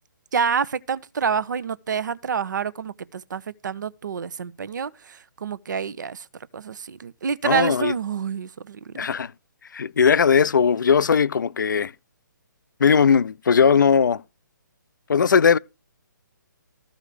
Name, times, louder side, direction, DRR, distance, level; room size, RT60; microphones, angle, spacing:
voice 1, 0.3-6.3 6.5-8.9, right 6 dB, 65° right, 0.8 m, -27 dB
voice 2, 7.4-7.9 8.9-9.3 9.7-11.9 12.8-14.2 15.1-15.6, left 6 dB, 70° left, 0.5 m, -18 dB
14.0 x 5.1 x 6.7 m
figure-of-eight pair, 140°, 11 cm